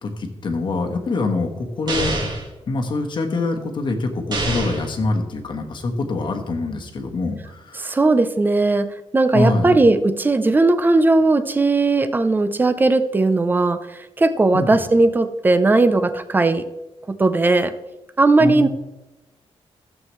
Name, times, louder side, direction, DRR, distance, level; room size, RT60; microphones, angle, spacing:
voice 1, 0.0-2.3 2.7-8.0 9.3-9.8 14.5-14.8 18.4-18.7, left 3 dB, 45° left, 4 dB, 1.2 m, -24 dB
sound 1, 1.9-2.5 4.3-4.9, right 2 dB, 40° right, 1.7 m, -25 dB
voice 2, 7.8-16.6 17.1-17.7 18.2-18.7, right 2 dB, 20° right, 12 dB, 0.5 m, -17 dB
14.5 x 7.5 x 3.1 m, 1.0 s
wide cardioid pair, 170°, 11 cm